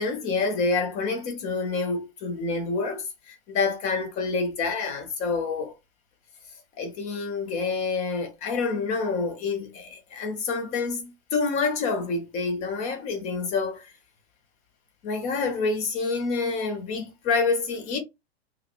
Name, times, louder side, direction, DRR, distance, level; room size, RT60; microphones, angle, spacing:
voice 1, 0.0-5.7 6.8-13.9 15.0-18.0, left 4 dB, 20° left, 0.6 m, -27 dB
2.5 x 2.0 x 2.4 m
figure-of-eight pair, 100°, 33 cm